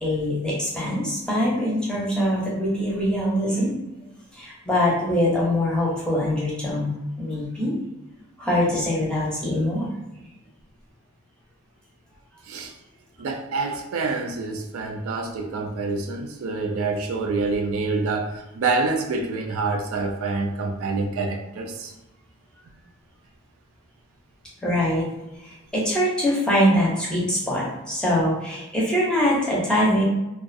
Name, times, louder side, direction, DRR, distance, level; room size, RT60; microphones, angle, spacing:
voice 1, 0.0-3.8 4.3-6.9 7.2-7.7 8.4-9.9 24.6-25.1 25.4-30.0, equal, 5° left, -6 dB, 0.6 m, -23 dB
voice 2, 13.2-21.9, right 3 dB, 70° right, 4 dB, 0.3 m, -27 dB
2.4 x 2.3 x 2.5 m, 0.98 s
head